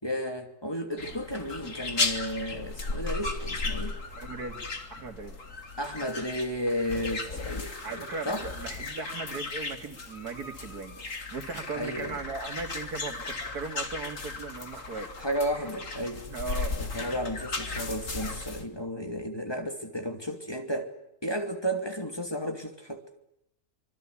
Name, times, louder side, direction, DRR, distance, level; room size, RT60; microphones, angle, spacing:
voice 1, 0.0-3.9 5.8-8.4 11.7-12.2 15.2-16.3 16.8-20.9 21.2-23.0, equal, 15° left, 5 dB, 2.9 m, -33 dB
sound 1, 1.0-18.6, left 3 dB, 55° left, 2.7 m, -36 dB
voice 2, 4.2-5.4 7.3-7.5 7.8-11.0 11.3-15.1 16.3-16.8 17.1-17.2, right 4 dB, 85° right, 7 dB, 3.0 m, -38 dB
26.0 x 23.5 x 8.5 m, 0.82 s
omnidirectional pair, 1.6 m